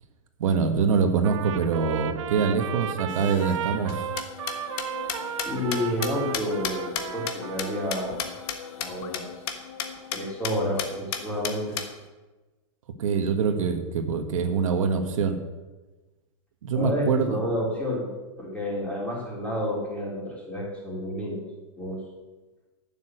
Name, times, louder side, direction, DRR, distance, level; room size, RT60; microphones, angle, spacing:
voice 1, 0.4-4.1 13.0-15.4 16.6-17.4, right 5 dB, 85° right, 5 dB, 1.6 m, -24 dB
Trumpet, 1.2-8.2, right 10 dB, 70° right, 1.0 m, -35 dB
sound 1, 3.1-11.5, left 8 dB, 75° left, 1.0 m, -43 dB
sound 2, 3.9-8.6 8.8-8.9 9.1-9.2 9.5-9.6 9.8-10.2 10.4-10.5 10.8-11.9, left 9 dB, 45° left, 1.4 m, -31 dB
voice 2, 5.1-8.2 8.7-9.3 10.1-11.8 16.7-18.1 18.4-21.4 21.8-22.0, equal, 10° left, -4 dB, 3.6 m, -30 dB
10.5 x 7.4 x 7.7 m, 1.2 s
supercardioid pair, 150°, 17 cm